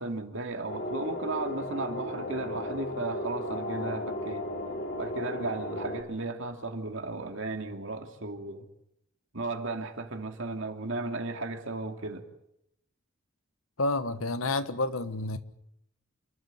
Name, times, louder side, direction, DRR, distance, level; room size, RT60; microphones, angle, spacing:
voice 1, 0.0-4.5 5.0-8.7 9.3-12.3, right 3 dB, 65° right, 2.6 m, -35 dB
sound 1, 0.7-6.0, left 1 dB, 60° left, 4.6 m, -35 dB
voice 2, 13.8-15.4, left 2 dB, 85° left, 1.4 m, -29 dB
28.0 x 12.5 x 9.2 m
head